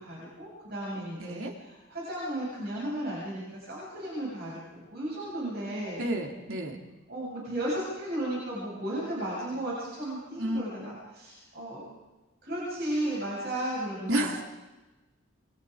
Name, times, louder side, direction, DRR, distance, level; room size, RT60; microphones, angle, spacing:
voice 1, 0.0-6.1 7.1-11.8 12.4-14.3, right 1 dB, 50° right, -6 dB, 7.8 m, -34 dB
voice 2, 1.2-1.5 6.0-6.8 10.4-10.6 14.1-14.4, right 1 dB, 90° right, 2 dB, 3.3 m, -30 dB
28.0 x 24.5 x 5.1 m, 1.1 s
head